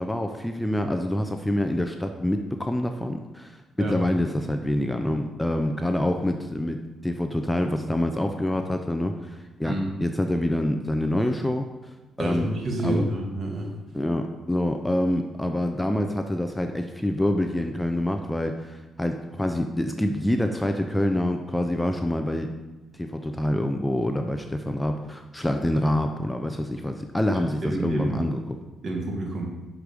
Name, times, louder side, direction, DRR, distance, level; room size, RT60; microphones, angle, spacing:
voice 1, 0.0-9.7 10.0-11.7 12.2-12.5 12.8-13.0 13.9-22.5 22.9-28.4, left 1 dB, 10° left, 5 dB, 0.5 m, -26 dB
voice 2, 12.2-13.7 27.3-28.2 28.8-29.5, right 1 dB, 50° right, 0 dB, 1.6 m, -29 dB
5.9 x 4.9 x 5.2 m, 1.1 s
cardioid pair, 90°, 0 cm